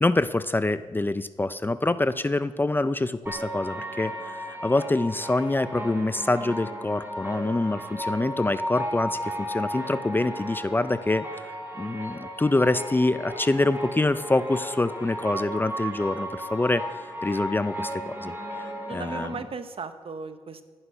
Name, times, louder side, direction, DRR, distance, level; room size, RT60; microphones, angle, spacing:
voice 1, 0.0-19.4, left 2 dB, 20° left, 13 dB, 0.4 m, -26 dB
sound 1, 3.3-19.3, equal, 20° right, 3.7 m, -35 dB
voice 2, 18.9-20.6, right 5 dB, 55° right, 10 dB, 0.9 m, -36 dB
11.5 x 9.9 x 5.6 m, 1.4 s
cardioid pair, 75°, 11 cm